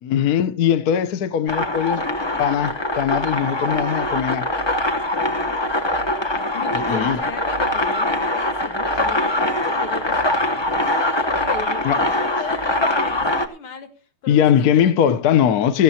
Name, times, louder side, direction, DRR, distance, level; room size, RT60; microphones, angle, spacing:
voice 1, 0.0-2.0 2.4-4.5 6.7-7.2 11.8-12.2 14.3-15.8, left 9 dB, 55° left, 1.1 m, -20 dB
sound 1, 1.5-13.5, left 1 dB, 25° left, 0.5 m, -22 dB
voice 2, 6.5-13.9 14.2-15.3, left 6 dB, 85° left, 2.5 m, -37 dB
17.5 x 14.5 x 2.8 m
omnidirectional pair, 2.3 m